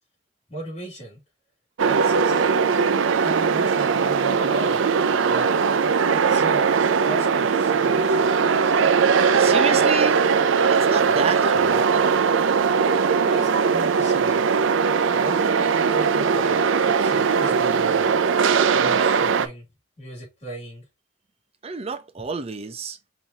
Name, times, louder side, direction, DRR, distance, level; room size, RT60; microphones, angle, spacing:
voice 1, 0.5-1.2 1.8-2.6 3.2-4.8 5.3-5.5 6.3-8.3 13.3-14.4 15.1-16.5 17.0-18.1 18.7-19.6 20.0-20.9, right 2 dB, 35° left, 3.1 m, -37 dB
sound 1, 1.8-19.5, right 5 dB, 70° right, 0.5 m, -20 dB
voice 2, 9.4-10.3 10.7-11.9 21.6-23.0, right 4 dB, 30° right, 0.6 m, -29 dB
5.6 x 2.9 x 2.9 m
head